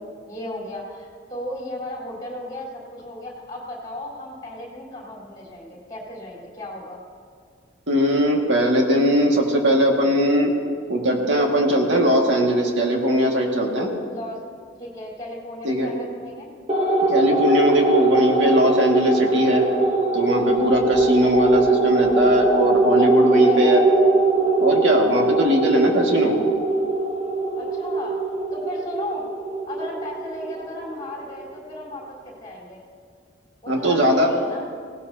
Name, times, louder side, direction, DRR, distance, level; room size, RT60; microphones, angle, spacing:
voice 1, 0.0-7.0 14.1-14.4 14.8-16.5 21.0-21.3 23.4-23.8 27.6-28.2 28.5-29.3 29.7-32.8 33.6-34.6, left 1 dB, 20° left, -4 dB, 3.9 m, -35 dB
voice 2, 7.9-10.5 10.9-13.9 15.6-15.9 17.1-19.6 20.1-23.8 24.6-26.4 33.7-34.3, equal, 70° right, 0 dB, 2.0 m, -20 dB
sound 1, 16.7-31.5, right 2 dB, 30° right, 1.0 m, -21 dB
18.0 x 17.5 x 2.8 m, 2.1 s
head